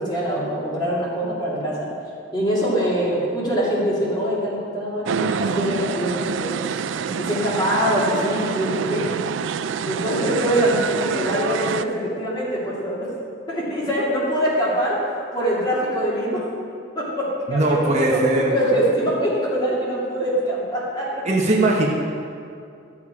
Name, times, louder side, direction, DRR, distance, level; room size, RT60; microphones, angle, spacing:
voice 1, 0.0-1.9 2.3-6.9 7.2-9.0 9.8-13.1 13.5-16.4 16.9-21.2 21.5-21.6, equal, 25° left, -7 dB, 2.6 m, -23 dB
sound 1, 5.1-11.8, right 6 dB, 85° right, 0.4 m, -27 dB
voice 2, 17.5-18.5 21.2-21.9, right 2 dB, 35° right, -2 dB, 1.0 m, -19 dB
12.5 x 7.2 x 4.8 m, 2.4 s
head